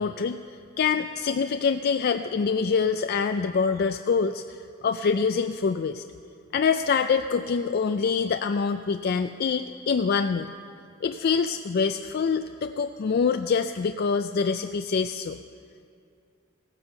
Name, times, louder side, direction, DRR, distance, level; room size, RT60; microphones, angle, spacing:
voice 1, 0.0-6.0 6.5-10.5 11.0-15.4, left 5 dB, 50° left, 8 dB, 0.4 m, -25 dB
16.5 x 9.7 x 6.8 m, 2.4 s
head